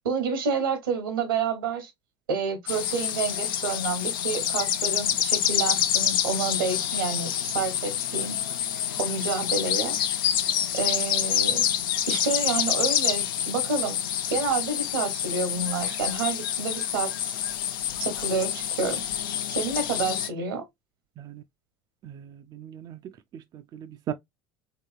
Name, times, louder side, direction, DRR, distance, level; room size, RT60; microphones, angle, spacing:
voice 1, 0.0-1.9 2.3-8.4 9.0-9.9 10.7-11.6 12.1-14.0 14.3-17.4 18.0-19.0 19.5-20.6, right 4 dB, 80° right, 1.0 m, -29 dB
sound 1, 2.7-20.3, left 10 dB, 70° left, 0.4 m, -27 dB
voice 2, 22.0-23.0 23.3-24.1, right 10 dB, 35° right, 0.3 m, -38 dB
2.9 x 2.9 x 2.3 m
hypercardioid pair, 75°, 12 cm